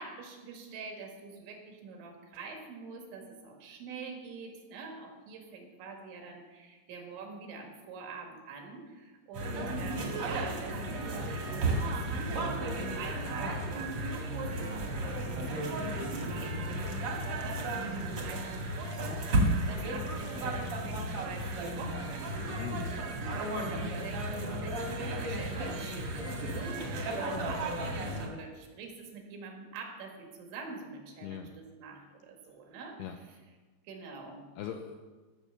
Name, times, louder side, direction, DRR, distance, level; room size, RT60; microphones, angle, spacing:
voice 1, 0.0-12.4 12.9-19.3 19.7-33.0 33.8-34.5, right 4 dB, 85° right, 2 dB, 4.3 m, -45 dB
sound 1, 9.3-28.3, right 1 dB, 50° right, 1.8 m, -33 dB
voice 2, 22.6-22.9 31.2-31.6 33.0-33.2 34.6-35.0, left 9 dB, 85° left, 6 dB, 2.3 m, -40 dB
15.0 x 6.5 x 6.9 m, 1.3 s
omnidirectional pair, 5.2 m